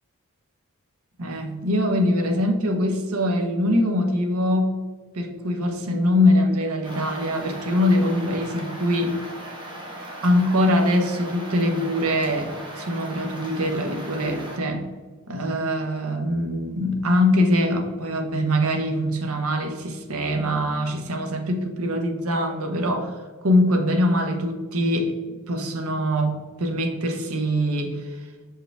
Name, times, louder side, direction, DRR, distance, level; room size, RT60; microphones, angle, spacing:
voice 1, 1.2-4.7 5.1-9.2 10.2-12.5 12.8-14.8 15.3-28.1, left 1 dB, 80° right, 4 dB, 0.9 m, -23 dB
sound 1, 6.8-14.6, right 1 dB, 20° right, 1.2 m, -38 dB
6.1 x 4.7 x 3.3 m, 1.5 s
head